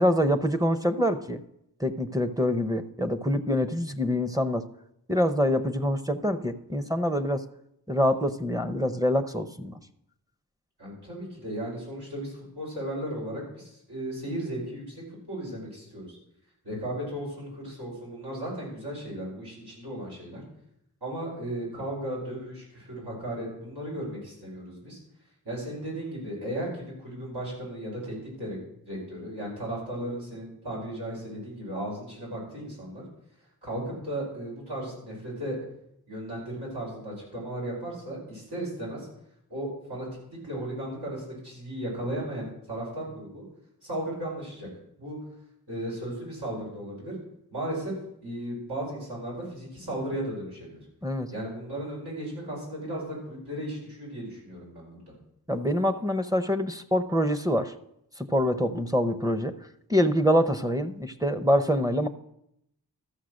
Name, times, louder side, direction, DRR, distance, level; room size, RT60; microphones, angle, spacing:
voice 1, 0.0-1.4 1.8-4.7 5.1-7.5 7.9-9.7 51.0-51.3 55.5-57.7 58.2-59.5 59.9-62.1, equal, 10° right, 6 dB, 0.7 m, -25 dB
voice 2, 10.8-16.2 16.6-20.4 21.0-25.0 25.4-28.6 28.8-33.0 33.6-35.6 36.1-39.1 39.5-40.1 40.4-43.4 43.8-44.7 45.0-45.2 45.7-47.1 47.5-47.9 48.2-50.9 51.3-55.0, right 1 dB, 90° right, -5 dB, 5.4 m, -35 dB
13.5 x 6.6 x 6.4 m, 0.78 s
wide cardioid pair, 60°, 39 cm